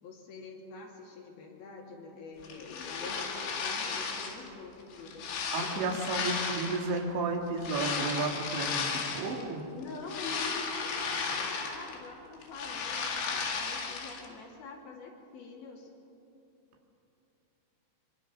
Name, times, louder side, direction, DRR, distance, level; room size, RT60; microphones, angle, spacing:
voice 1, 0.0-5.9 9.7-15.9, left 4 dB, 60° left, 0 dB, 4.1 m, -45 dB
sound 1, 2.4-4.5 4.9-7.0 7.6-9.4 9.8-12.1 12.3-14.3, left 5 dB, 80° left, 4.5 m, -34 dB
voice 2, 5.5-9.6, right 3 dB, 85° right, 1 dB, 4.5 m, -32 dB
24.5 x 24.0 x 6.1 m, 2.8 s
omnidirectional pair, 5.1 m